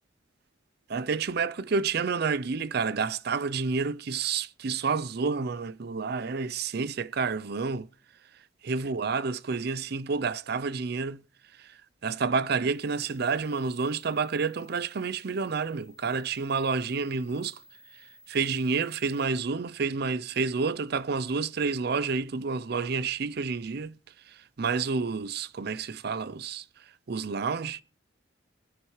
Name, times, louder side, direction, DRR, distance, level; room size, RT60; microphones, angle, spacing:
voice 1, 0.9-7.9 8.6-11.2 11.6-17.6 17.9-24.0 24.3-26.7 27.1-27.8, right 5 dB, 55° right, 0.5 m, -29 dB
sound 1, 12.7-19.3, left 1 dB, 5° left, 4.0 m, -58 dB
20.5 x 9.1 x 3.1 m
head